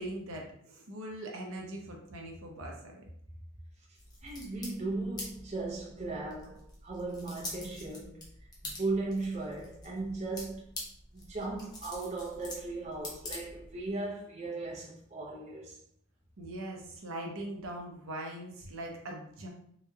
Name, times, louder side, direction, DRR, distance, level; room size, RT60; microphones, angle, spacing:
voice 1, 0.0-3.1 16.4-19.5, right 1 dB, 65° right, 0.7 m, -41 dB
sound 1, 3.9-13.9, left 2 dB, 20° left, 0.6 m, -46 dB
voice 2, 4.2-10.8 11.1-15.8, right 3 dB, 30° right, 0.5 m, -37 dB
3.7 x 3.1 x 2.2 m
head